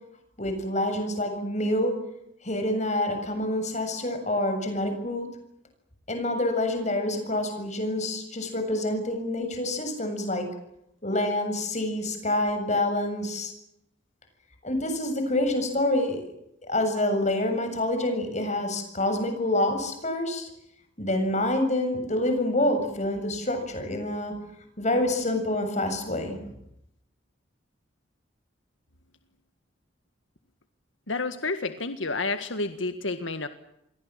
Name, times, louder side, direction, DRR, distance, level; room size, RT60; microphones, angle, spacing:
voice 1, 0.4-1.9 2.4-5.3 6.1-10.5 11.0-13.5 14.6-16.2 16.7-20.5 21.0-24.3 24.8-26.4, left 1 dB, 40° left, 6 dB, 7.4 m, -27 dB
voice 2, 31.1-33.5, left 3 dB, 85° left, 9 dB, 1.8 m, -30 dB
29.0 x 23.0 x 7.6 m, 0.79 s
head